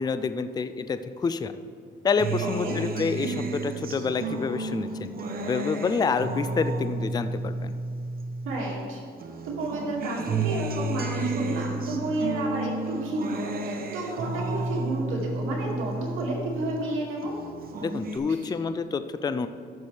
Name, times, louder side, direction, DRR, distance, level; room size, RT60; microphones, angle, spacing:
voice 1, 0.0-1.5 2.0-5.1 5.4-7.8 17.8-19.5, left 5 dB, 20° left, 11 dB, 0.4 m, -28 dB
Acoustic guitar, 2.2-8.8 9.2-16.8 17.2-18.2, right 2 dB, 50° right, 0.9 m, -32 dB
voice 2, 2.4-2.8 8.4-9.0 9.4-17.3 18.4-18.5, right 2 dB, 90° right, -4 dB, 2.2 m, -31 dB
14.0 x 6.1 x 3.4 m, 2.3 s
cardioid pair, 90°, 20 cm